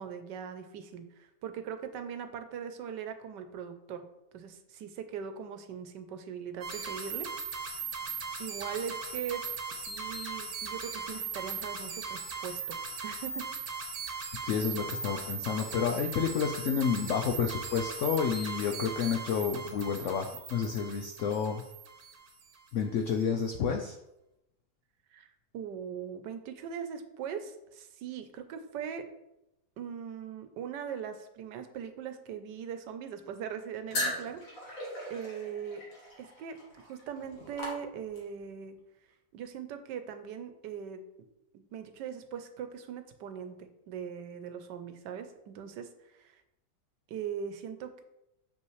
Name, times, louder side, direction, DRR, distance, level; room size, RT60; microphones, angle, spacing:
voice 1, 0.0-4.1 4.3-7.3 8.4-9.4 9.8-13.5 25.1-25.3 25.5-29.0 29.8-35.8 36.2-38.8 39.3-41.0 41.5-45.9 46.2-46.3 47.1-48.0, right 8 dB, 85° right, 9 dB, 1.3 m, -40 dB
sound 1, 6.6-22.5, right 5 dB, 65° right, 1.4 m, -39 dB
voice 2, 14.4-21.6 22.7-24.0, left 6 dB, 80° left, 5 dB, 0.6 m, -30 dB
sound 2, 33.9-38.4, left 1 dB, 50° left, 2.0 m, -38 dB
6.8 x 5.6 x 3.1 m, 0.88 s
omnidirectional pair, 1.8 m